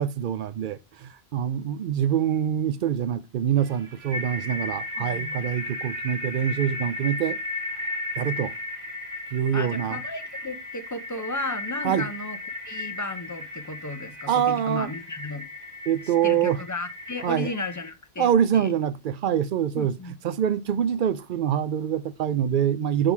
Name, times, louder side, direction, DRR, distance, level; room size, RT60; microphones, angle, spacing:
voice 1, 0.0-7.4 8.2-8.5 9.3-10.0 11.8-12.1 14.3-14.9 15.9-16.6 17.2-17.5 18.2-20.0 20.2-23.1, right 9 dB, 60° right, 0.6 m, -25 dB
sound 1, 3.6-17.9, left 2 dB, 40° right, 1.0 m, -35 dB
voice 2, 5.0-5.5 9.5-12.4 12.6-15.4 16.0-18.7 19.7-20.1, left 2 dB, 20° left, 0.6 m, -34 dB
5.6 x 3.9 x 4.6 m
omnidirectional pair, 1.1 m